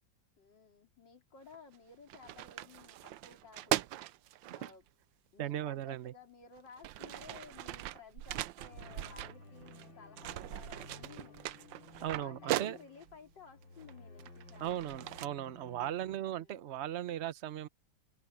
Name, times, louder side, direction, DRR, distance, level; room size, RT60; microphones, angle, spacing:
voice 1, 0.4-3.8 4.5-4.9 5.3-11.4 12.0-14.8 15.9-16.6, left 5 dB, 65° left, 4.1 m, -56 dB
sound 1, 1.5-1.8 2.1-4.7 5.9-6.0 6.6-9.9 10.2-13.2 13.8-15.3, right 14 dB, 80° right, 1.3 m, -39 dB
voice 2, 5.4-6.1 12.0-12.8 14.6-17.7, right 12 dB, 60° right, 0.7 m, -37 dB
sound 2, 8.7-16.2, left 2 dB, 80° left, 4.2 m, -55 dB
omnidirectional pair, 2.1 m